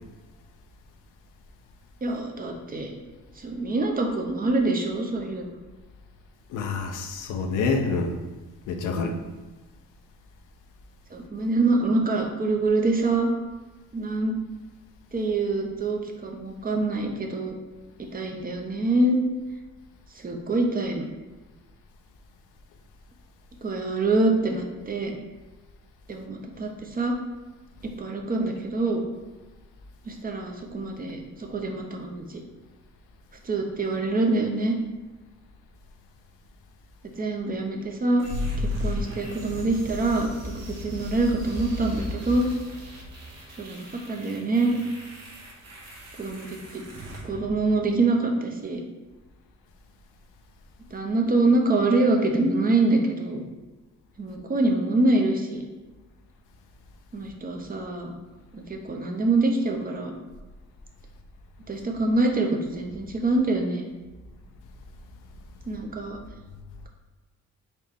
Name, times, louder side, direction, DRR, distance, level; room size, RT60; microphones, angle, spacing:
voice 1, 2.0-3.0 3.4-5.5 11.1-13.3 13.9-14.3 15.1-17.6 18.1-19.2 20.1-21.1 23.6-25.1 26.1-27.1 28.0-29.0 30.0-32.4 33.4-34.8 37.0-38.2 38.6-40.3 40.5-42.5 43.6-44.8 46.2-46.8 47.2-48.8 50.9-53.4 54.2-55.6 57.1-58.1 58.5-60.1 61.7-63.9 65.7-66.2, right 2 dB, 30° right, 2 dB, 0.7 m, -25 dB
voice 2, 6.5-8.2 8.7-9.2, left 4 dB, 90° left, 5 dB, 0.6 m, -27 dB
sound 1, 38.2-48.2, left 1 dB, 55° right, 1.1 m, -35 dB
4.2 x 3.0 x 3.5 m, 1.2 s
cardioid pair, 90°, 30 cm